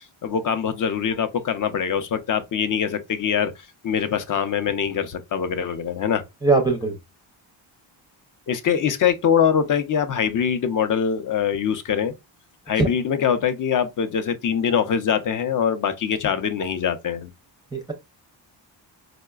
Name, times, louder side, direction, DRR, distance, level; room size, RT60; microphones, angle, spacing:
voice 1, 0.0-3.5 3.8-6.2 8.5-12.1 12.7-17.3, left 7 dB, 45° left, 0.5 m, -23 dB
voice 2, 6.4-6.9 12.8-12.9 17.7-17.9, right 3 dB, 10° right, 0.5 m, -20 dB
4.7 x 2.1 x 2.3 m
cardioid pair, 120°, 46 cm